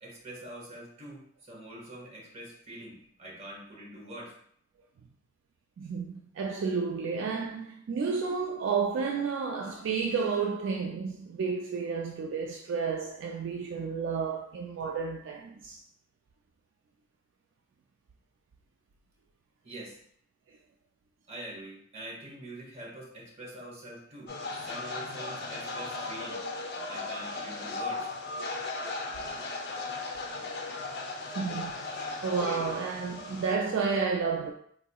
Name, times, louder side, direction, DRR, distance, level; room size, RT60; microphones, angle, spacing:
voice 1, 0.0-4.3 19.6-20.0 21.3-26.4 26.9-28.1, right 1 dB, 35° right, 0.9 m, -44 dB
voice 2, 5.8-15.8 31.3-34.5, right 5 dB, 70° right, 0.3 m, -31 dB
sound 1, 24.3-33.5, left 3 dB, 60° left, 0.5 m, -37 dB
3.9 x 2.8 x 2.2 m
head